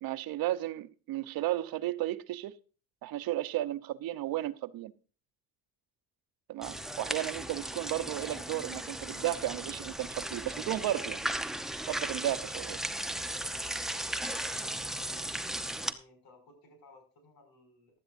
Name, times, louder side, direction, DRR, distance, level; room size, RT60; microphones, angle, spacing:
voice 1, 0.0-2.6 3.0-4.9 6.5-11.2 11.9-12.8, right 14 dB, 70° right, 0.9 m, -34 dB
sound 1, 6.6-15.9, right 1 dB, ahead, 0.8 m, -36 dB
voice 2, 7.0-7.3 14.9-15.3 15.7-18.0, left 2 dB, 70° left, 6.2 m, -59 dB
15.5 x 12.0 x 2.6 m
cardioid pair, 125°, 37 cm